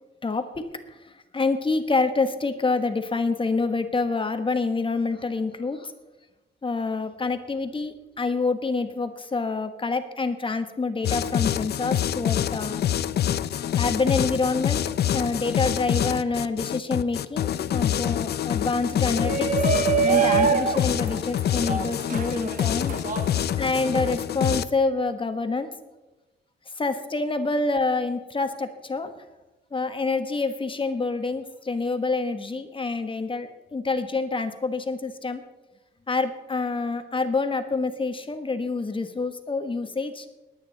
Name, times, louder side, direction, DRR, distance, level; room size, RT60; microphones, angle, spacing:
voice 1, 0.2-5.9 6.6-12.8 13.8-14.8 15.1-19.3 20.0-23.0 23.6-25.7 26.7-29.1 29.7-35.4 36.1-40.2, left 3 dB, 25° left, 8 dB, 1.3 m, -27 dB
sound 1, 11.0-24.6, left 10 dB, 55° left, 0.5 m, -26 dB
Shout, 19.0-24.2, right 7 dB, 40° right, 1.3 m, -26 dB
20.5 x 9.2 x 4.1 m, 1.1 s
cardioid pair, 90°, 20 cm